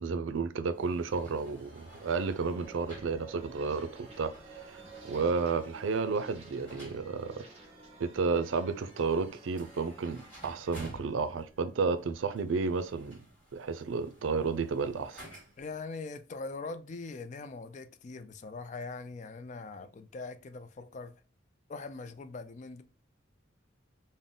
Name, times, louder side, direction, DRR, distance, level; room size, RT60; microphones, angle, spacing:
voice 1, 0.0-3.9 4.2-4.3 4.7-4.8 5.0-7.4 8.0-13.2 13.5-15.2, right 4 dB, 85° right, 0.4 m, -32 dB
sound 1, 0.7-15.8, right 1 dB, 10° left, 1.5 m, -54 dB
sound 2, 1.0-12.5, right 2 dB, 30° right, 1.0 m, -52 dB
voice 2, 15.6-21.2 21.7-22.8, left 3 dB, 40° left, 0.3 m, -42 dB
3.8 x 2.1 x 3.6 m
head